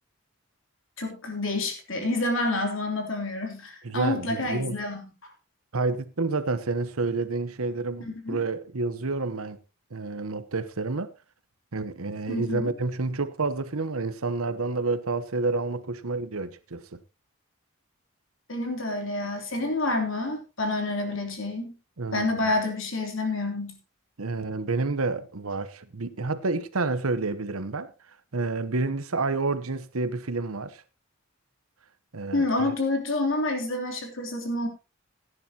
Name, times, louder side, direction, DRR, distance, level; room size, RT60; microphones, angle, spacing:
voice 1, 1.0-5.1 8.0-8.4 12.3-12.7 18.5-21.7 22.1-23.7 32.3-34.7, left 2 dB, 65° left, 3.3 m, -28 dB
voice 2, 3.8-4.8 5.7-9.6 9.9-11.1 11.7-17.0 21.1-21.2 22.0-22.5 24.2-27.9 28.3-30.8 32.1-32.7, right 3 dB, 85° right, 1.0 m, -29 dB
17.0 x 10.0 x 2.9 m
head